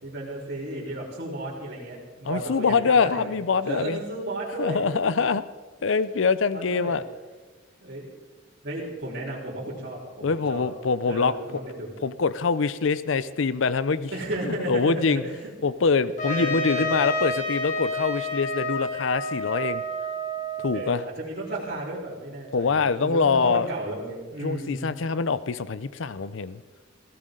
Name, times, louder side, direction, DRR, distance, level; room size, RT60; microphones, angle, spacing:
voice 1, 0.0-3.4 3.6-5.2 6.5-7.0 7.8-8.2 8.6-10.7 11.0-11.9 14.1-15.3 16.3-16.9 20.7-25.0, right 1 dB, 50° right, -7 dB, 3.9 m, -33 dB
voice 2, 2.2-4.0 4.6-5.4 5.8-7.0 10.2-11.3 12.0-14.1 14.4-15.2 15.6-19.8 20.6-21.0 22.5-23.7 24.4-26.6, left 4 dB, 70° left, 16 dB, 0.6 m, -24 dB
Trumpet, 16.2-21.0, left 1 dB, 40° left, 3.9 m, -29 dB
21.0 x 16.0 x 3.8 m, 1.3 s
head